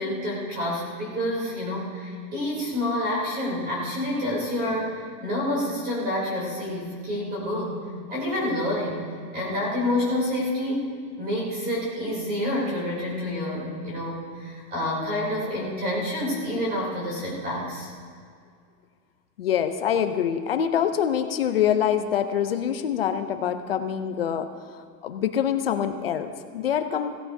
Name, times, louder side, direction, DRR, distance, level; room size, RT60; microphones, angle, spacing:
voice 1, 0.0-7.8 8.1-9.0 9.3-17.9, left 1 dB, 20° right, -5 dB, 3.1 m, -28 dB
voice 2, 19.4-27.2, left 9 dB, 40° left, 9 dB, 0.5 m, -25 dB
16.5 x 15.5 x 2.7 m, 2.1 s
supercardioid pair, 175°, 50 cm